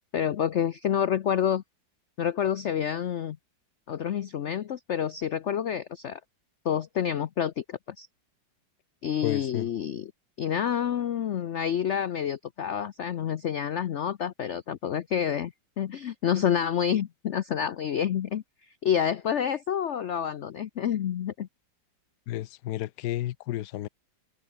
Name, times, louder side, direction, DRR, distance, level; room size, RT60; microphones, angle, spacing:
voice 1, 0.1-1.6 2.2-3.4 3.9-6.2 6.6-8.1 9.0-10.1 10.4-18.4 18.8-21.5, left 9 dB, 85° left, 0.6 m, -28 dB
voice 2, 9.2-9.7 22.3-23.9, left 14 dB, 65° left, 1.2 m, -32 dB
omnidirectional pair, 2.1 m